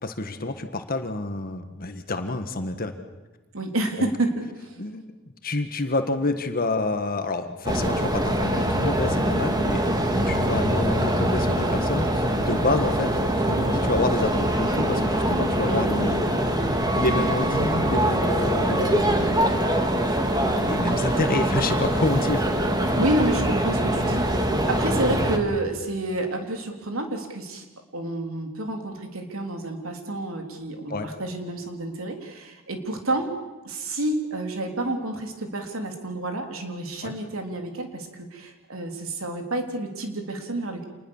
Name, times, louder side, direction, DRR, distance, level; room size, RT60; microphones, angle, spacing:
voice 1, 0.0-2.9 4.0-4.1 4.8-5.0 5.4-9.8 10.2-13.1 13.4-16.2 17.0-19.4 20.3-22.5 22.8-23.0 23.3-23.4 30.9-31.1 37.0-37.1, left 2 dB, 45° left, 7 dB, 1.6 m, -28 dB
voice 2, 3.5-4.8 15.7-15.8 23.0-27.7 27.9-33.3 33.6-40.8, right 1 dB, 85° right, 4 dB, 3.5 m, -29 dB
sound 1, 7.7-25.4, right 1 dB, 20° right, 2.2 m, -23 dB
27.5 x 20.5 x 7.3 m, 1.2 s
head